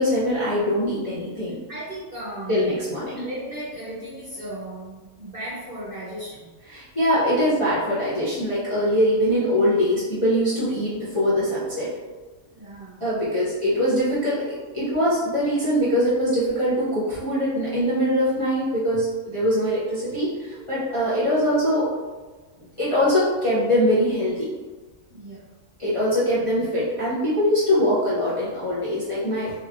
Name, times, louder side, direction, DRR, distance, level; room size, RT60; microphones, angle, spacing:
voice 1, 0.0-1.6 2.5-3.2 6.7-11.9 13.0-21.9 22.8-24.5 25.8-29.5, equal, 30° left, -11 dB, 0.6 m, -22 dB
voice 2, 1.7-2.8 3.1-6.6 12.5-13.0 25.1-25.4, right 1 dB, 50° right, -8 dB, 0.7 m, -36 dB
3.1 x 3.1 x 2.5 m, 1.3 s
omnidirectional pair, 1.6 m